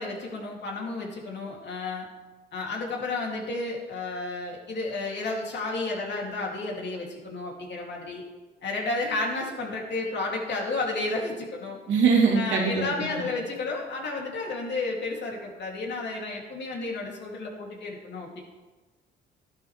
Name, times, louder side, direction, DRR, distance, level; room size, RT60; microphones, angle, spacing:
voice 1, 0.0-2.1 2.5-8.2 8.6-11.8 12.3-18.4, left 3 dB, 60° left, -1 dB, 2.9 m, -32 dB
voice 2, 11.9-13.1, right 5 dB, 70° right, -2 dB, 2.9 m, -22 dB
12.5 x 11.5 x 3.4 m, 1.2 s
cardioid pair, 90°, 20 cm